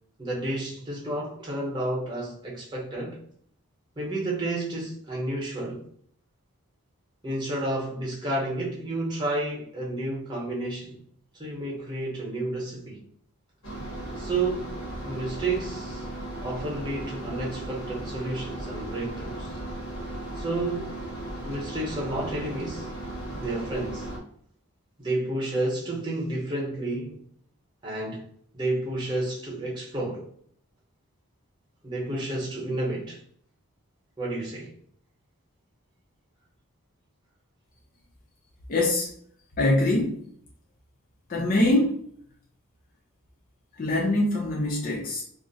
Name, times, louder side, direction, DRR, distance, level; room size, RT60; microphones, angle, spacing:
voice 1, 0.2-3.2 4.0-5.8 7.2-11.0 11.3-13.0 14.2-14.7 15.0-16.1 16.4-19.5 20.4-21.0 21.4-22.9 23.4-24.1 25.0-27.2 27.8-28.2 28.5-30.2 31.8-33.2 34.2-34.7, right 2 dB, 20° right, 0.8 m, -31 dB
sound 1, 13.6-24.2, right 1 dB, 65° left, 1.0 m, -36 dB
voice 2, 38.7-39.1 39.6-40.2 41.3-42.0 43.8-45.2, left 1 dB, 35° left, 0.5 m, -23 dB
2.4 x 2.0 x 3.9 m
head